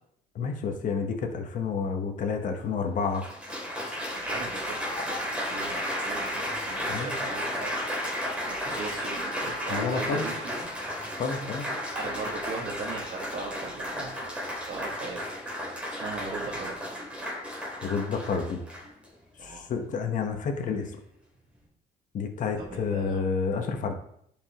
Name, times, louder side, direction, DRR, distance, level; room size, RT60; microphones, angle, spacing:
voice 1, 0.3-3.2 6.9-7.1 9.7-10.2 11.2-11.7 17.8-18.6 19.4-20.9 22.1-23.9, left 5 dB, 50° left, 4 dB, 1.1 m, -29 dB
Applause, 2.4-2.5 3.1-19.1 19.8-20.1, equal, 5° right, 2.8 m, -33 dB
voice 2, 4.2-7.8 8.5-10.7 11.9-15.3 15.6-16.9 19.4-19.6 22.6-23.2, right 4 dB, 45° right, -3 dB, 1.7 m, -38 dB
11.0 x 5.3 x 3.0 m, 0.70 s
cardioid pair, 110°, 17 cm